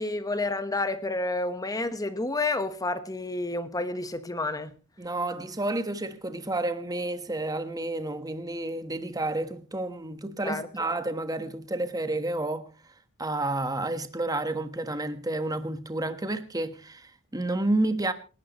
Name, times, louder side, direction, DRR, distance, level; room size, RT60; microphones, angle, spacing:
voice 1, 0.0-4.7 10.4-10.7, left 2 dB, 15° left, 1.2 m, -30 dB
voice 2, 5.0-12.7 13.2-18.1, right 2 dB, 15° right, 1.3 m, -30 dB
27.5 x 11.5 x 3.0 m
head